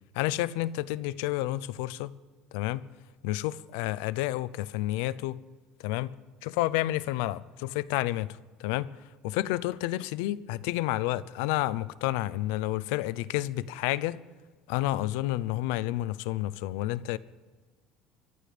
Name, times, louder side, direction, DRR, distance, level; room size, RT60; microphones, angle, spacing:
voice 1, 0.1-2.1 2.5-2.8 3.2-5.4 5.8-6.1 6.4-8.9 9.2-14.2 14.7-17.2, left 16 dB, 85° left, 0.6 m, -30 dB
24.5 x 11.5 x 5.1 m
cardioid pair, 145°, 0 cm